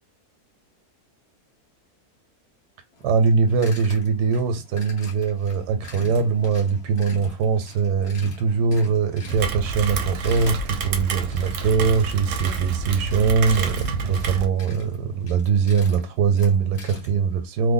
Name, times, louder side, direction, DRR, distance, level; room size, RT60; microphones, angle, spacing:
sound 1, 2.9-17.3, left 1 dB, 50° left, 1.2 m, -44 dB
voice 1, 3.0-17.7, right 5 dB, 85° right, 1.1 m, -22 dB
Rain, 9.3-14.5, right 5 dB, 65° right, 0.8 m, -28 dB
3.0 x 2.1 x 3.8 m
omnidirectional pair, 1.7 m